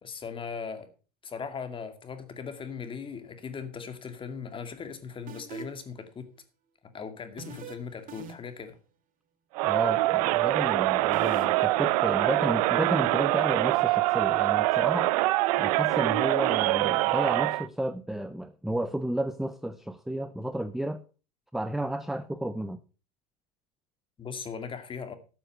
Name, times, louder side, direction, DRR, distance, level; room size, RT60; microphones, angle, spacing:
voice 1, 0.0-0.9 1.2-6.3 6.8-8.8 24.2-25.1, left 6 dB, 25° left, 2.3 m, -39 dB
sound 1, 5.3-5.9 7.4-7.7 8.1-8.6 11.1-11.4, right 6 dB, 45° right, 2.1 m, -41 dB
Crowd, 9.5-17.7, right 19 dB, 70° right, 0.6 m, -24 dB
voice 2, 9.6-15.1 15.6-21.0 21.5-22.8, right 1 dB, ahead, 0.5 m, -32 dB
13.0 x 6.9 x 5.3 m
supercardioid pair, 105°, 20 cm